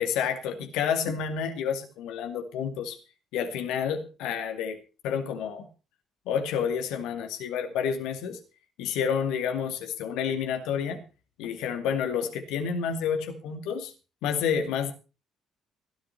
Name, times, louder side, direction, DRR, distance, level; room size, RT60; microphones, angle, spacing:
voice 1, 0.0-3.0 3.3-4.8 5.0-5.7 6.3-8.4 8.8-11.0 11.4-13.9 14.2-14.9, left 7 dB, 60° left, 6 dB, 2.4 m, -29 dB
17.5 x 11.5 x 4.4 m, 0.33 s
figure-of-eight pair, 45°, 0 cm